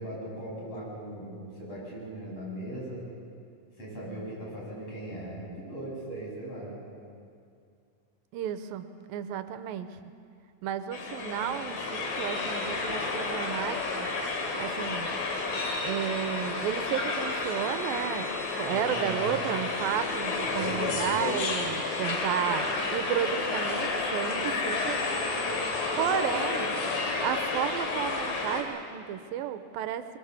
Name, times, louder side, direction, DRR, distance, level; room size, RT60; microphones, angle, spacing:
voice 1, 0.0-3.1 3.8-6.7 18.7-19.3 20.4-21.3, right 1 dB, 40° left, -5 dB, 7.8 m, -39 dB
voice 2, 8.3-10.0 10.6-14.1 14.6-15.1 15.8-25.0 26.0-26.8 27.2-30.1, right 10 dB, 85° right, 10 dB, 2.5 m, -32 dB
sound 1, 10.9-28.6, left 3 dB, 75° left, 3.9 m, -31 dB
22.5 x 22.0 x 7.0 m, 2.4 s
omnidirectional pair, 4.2 m